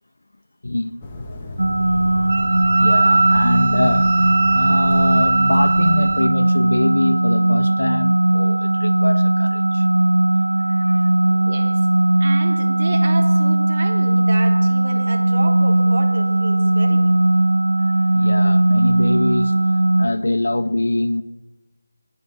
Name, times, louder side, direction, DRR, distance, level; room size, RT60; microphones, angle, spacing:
voice 1, 0.6-1.0 1.3-1.5 2.8-9.9 10.7-11.1 17.8-19.6 20.0-21.2, left 2 dB, 65° left, 1.3 m, -24 dB
sound 1, 1.0-6.3, left 2 dB, 10° left, 1.8 m, -33 dB
sound 2, 1.6-20.1, right 1 dB, 80° right, 1.4 m, -18 dB
Wind instrument woodwind instrument, 2.3-6.3, right 3 dB, 55° right, 1.6 m, -20 dB
voice 2, 11.2-11.8 12.2-17.1, right 2 dB, 35° right, 3.3 m, -31 dB
27.0 x 20.0 x 7.1 m
figure-of-eight pair, 175°, 0 cm